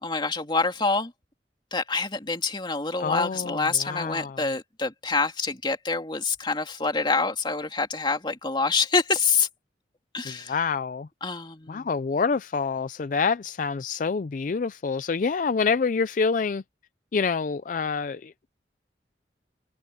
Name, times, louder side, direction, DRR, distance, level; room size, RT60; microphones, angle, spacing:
voice 1, 0.0-1.1 1.7-9.5 10.1-10.5 11.2-11.9, left 4 dB, 25° left, 2.5 m, -26 dB
voice 2, 3.0-4.4 10.2-11.1 11.7-16.6 17.1-18.5, left 5 dB, 45° left, 0.4 m, -27 dB
head